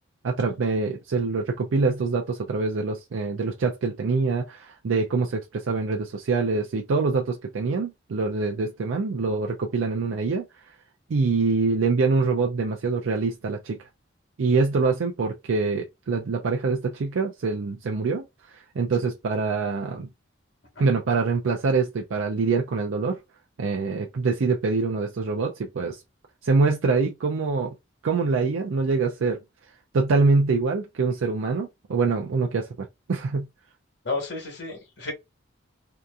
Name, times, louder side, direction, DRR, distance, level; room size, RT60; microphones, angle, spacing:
voice 1, 0.2-10.4 11.1-13.8 14.4-20.1 20.8-23.2 23.6-26.0 26.4-27.7 28.0-29.4 29.9-33.5, right 4 dB, 80° right, 0.4 m, -25 dB
voice 2, 34.0-35.1, left 3 dB, 60° left, 1.2 m, -31 dB
2.8 x 2.3 x 2.4 m
head